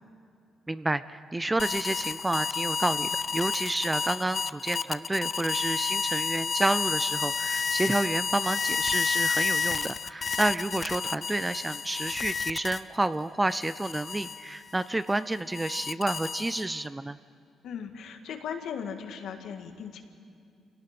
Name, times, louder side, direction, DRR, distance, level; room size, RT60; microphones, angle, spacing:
voice 1, 0.7-17.2, right 2 dB, 15° right, 14 dB, 0.4 m, -30 dB
sound 1, 1.6-13.1 13.5-16.9, left 5 dB, 40° left, 0.6 m, -31 dB
voice 2, 17.6-20.0, left 7 dB, 75° left, 5 dB, 1.8 m, -37 dB
26.5 x 18.0 x 5.9 m, 2.4 s
cardioid pair, 90°, 0 cm